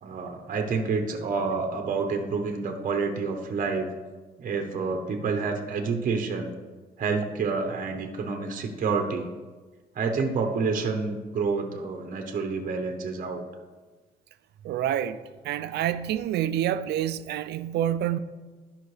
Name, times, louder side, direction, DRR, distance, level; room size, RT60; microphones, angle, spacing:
voice 1, 0.0-3.9 4.4-6.5 7.0-9.3 9.9-13.4, right 4 dB, 55° right, 1.0 m, -28 dB
voice 2, 14.6-15.2 15.4-18.2, right 11 dB, 90° right, 0.4 m, -27 dB
12.0 x 5.7 x 3.3 m
cardioid pair, 120°, 17 cm